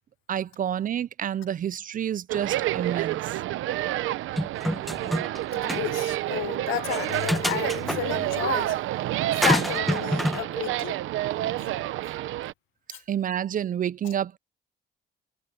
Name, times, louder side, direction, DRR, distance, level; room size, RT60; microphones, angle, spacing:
voice 1, 0.3-3.3 12.9-14.4, right 9 dB, 45° right, 0.4 m, -29 dB
sound 1, 2.3-12.5, right 15 dB, 85° right, 0.8 m, -29 dB
sound 2, 4.4-5.4 5.7-5.8 6.9-8.0 9.4-10.4, equal, ahead, 1.4 m, -27 dB
voice 2, 5.5-8.8 9.4-11.0, left 16 dB, 85° left, 0.5 m, -32 dB
cardioid pair, 90°, 20 cm